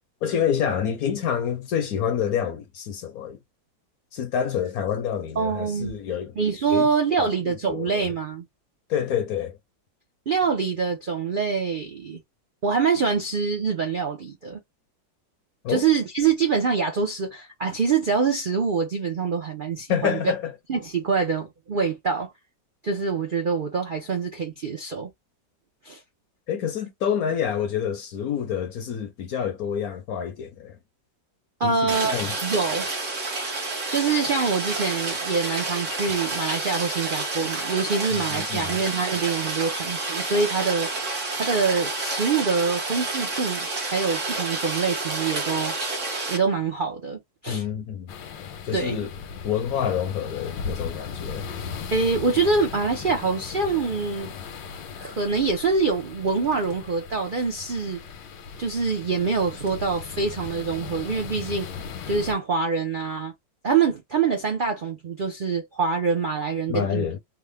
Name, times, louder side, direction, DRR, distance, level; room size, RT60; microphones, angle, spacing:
voice 1, 0.2-3.4 4.1-6.4 6.7-6.9 7.2-7.3 7.7-8.1 8.9-9.6 15.6-15.8 19.9-20.5 26.5-30.8 31.6-32.4 38.1-38.8 47.5-48.1 48.6-49.1 49.4-51.5 66.7-67.2, left 8 dB, 65° left, 0.9 m, -27 dB
voice 2, 5.4-5.9 6.4-8.4 10.3-12.2 12.6-14.6 15.7-20.3 20.7-22.3 22.8-25.1 25.8-26.0 31.6-32.1 32.4-32.9 33.9-40.9 41.4-45.7 46.3-47.6 48.7-49.0 51.9-54.3 55.0-58.0 58.6-61.7 62.1-63.3 63.6-67.1, right 5 dB, 80° right, 0.4 m, -25 dB
Rain, 31.9-46.4, right 3 dB, 45° right, 1.3 m, -29 dB
sound 1, 48.1-62.3, left 6 dB, 85° left, 1.4 m, -37 dB
3.5 x 2.1 x 3.4 m
omnidirectional pair, 2.0 m